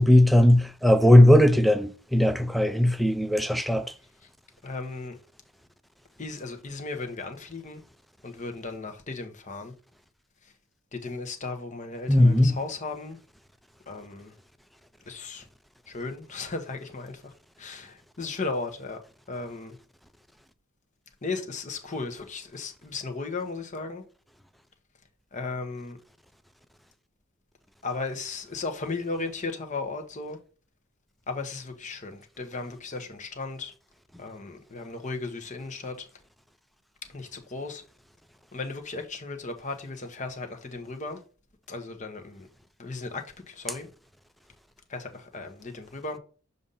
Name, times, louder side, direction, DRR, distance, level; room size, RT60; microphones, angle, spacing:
voice 1, 0.0-3.9 12.1-12.6, left 1 dB, ahead, 0.3 m, -18 dB
voice 2, 4.6-5.2 6.2-7.8 8.2-9.7 10.4-10.5 10.9-13.2 13.9-14.3 15.1-15.5 15.9-19.0 19.3-19.8 21.2-24.0 25.3-26.0 27.8-30.4 31.3-33.7 34.2-36.1 37.1-37.8 38.5-41.2 41.7-42.5 42.8-43.9 44.9-46.2, left 3 dB, 35° left, 0.9 m, -36 dB
6.8 x 2.7 x 5.3 m
head